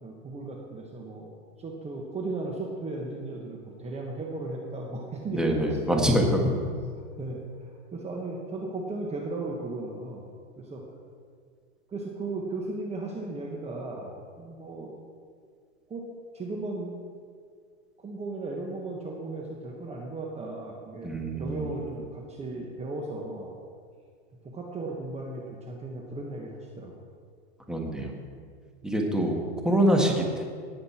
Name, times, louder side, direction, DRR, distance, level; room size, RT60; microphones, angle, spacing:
voice 1, 0.0-1.3 1.6-6.5 7.2-10.2 10.6-10.8 11.9-14.9 15.9-16.0 16.3-16.9 18.0-23.5 24.4-27.0 28.8-29.0, right 2 dB, 20° right, -1 dB, 1.4 m, -36 dB
voice 2, 5.3-6.6 21.0-21.7 27.7-28.1 28.8-29.4 29.6-30.4, equal, ahead, 0 dB, 1.7 m, -25 dB
18.0 x 7.8 x 4.4 m, 2.1 s
supercardioid pair, 125°, 33 cm